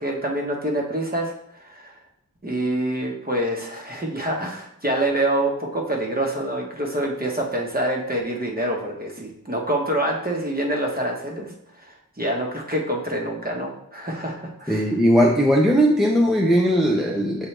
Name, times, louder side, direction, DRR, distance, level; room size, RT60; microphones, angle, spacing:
voice 1, 0.0-2.0 2.4-11.5 11.8-14.9, right 1 dB, 25° right, 0 dB, 1.2 m, -26 dB
voice 2, 14.7-17.5, equal, ahead, -2 dB, 0.6 m, -18 dB
7.3 x 3.8 x 3.3 m, 0.73 s
wide cardioid pair, 75°, 35 cm